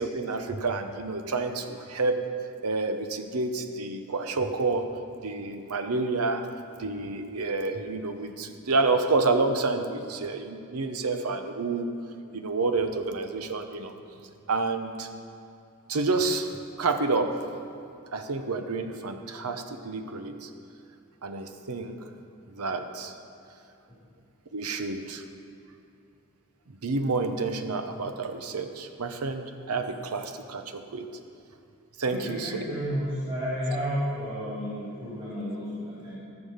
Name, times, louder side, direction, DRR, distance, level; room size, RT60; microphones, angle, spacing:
voice 1, 0.0-2.2 2.6-4.8 5.2-6.4 6.8-11.9 12.3-13.9 14.5-15.1 15.9-16.5 16.8-17.3 18.1-20.5 21.2-22.0 22.5-23.1 24.5-25.2 26.8-31.1 32.0-32.6, right 3 dB, 85° right, 7 dB, 0.8 m, -29 dB
voice 2, 32.0-36.2, equal, 25° right, -10 dB, 3.2 m, -32 dB
15.0 x 6.9 x 5.6 m, 2.5 s
head